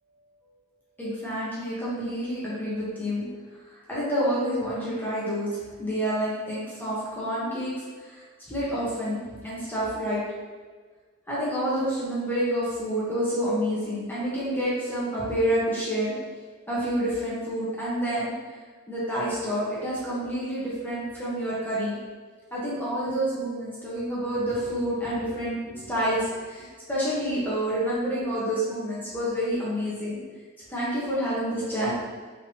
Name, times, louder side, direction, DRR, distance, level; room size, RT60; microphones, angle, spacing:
voice 1, 1.0-3.2 3.9-10.2 11.3-16.1 16.7-18.3 18.9-22.0 22.5-30.2 30.7-31.9, equal, 10° left, -9 dB, 1.2 m, -28 dB
4.8 x 3.6 x 2.9 m, 1.5 s
head